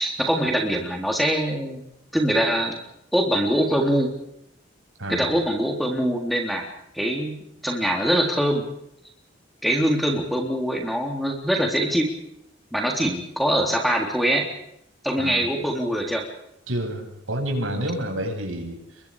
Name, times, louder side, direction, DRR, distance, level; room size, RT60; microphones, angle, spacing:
voice 1, 0.0-1.8 2.1-2.8 3.1-4.1 5.1-6.7 6.9-7.3 7.6-8.6 9.6-12.1 12.7-14.5 15.0-16.2, equal, ahead, 2 dB, 3.6 m, -23 dB
voice 2, 5.0-5.4 15.2-15.5 16.7-19.0, right 1 dB, 80° right, 3 dB, 7.8 m, -29 dB
29.5 x 23.5 x 5.1 m, 0.77 s
head